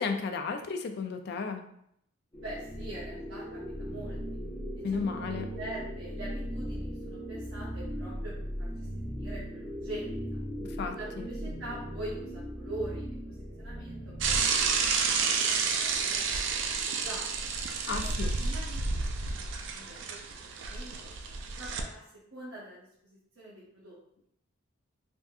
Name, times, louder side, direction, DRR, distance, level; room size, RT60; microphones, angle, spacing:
voice 1, 0.0-1.6 4.8-5.5 10.6-11.3 17.8-18.3, left 5 dB, 50° left, 6 dB, 0.3 m, -33 dB
sound 1, 2.3-14.4, equal, 20° left, 0.7 m, -38 dB
voice 2, 2.4-4.2 4.9-10.2 10.9-15.6 15.8-16.7 17.0-17.3 17.8-19.1 19.4-21.1 21.6-24.0, right 1 dB, 80° right, -8 dB, 0.9 m, -44 dB
Bicycle / Mechanisms, 14.2-21.8, right 5 dB, 60° right, 0.3 m, -30 dB
3.4 x 2.6 x 2.3 m, 0.73 s
head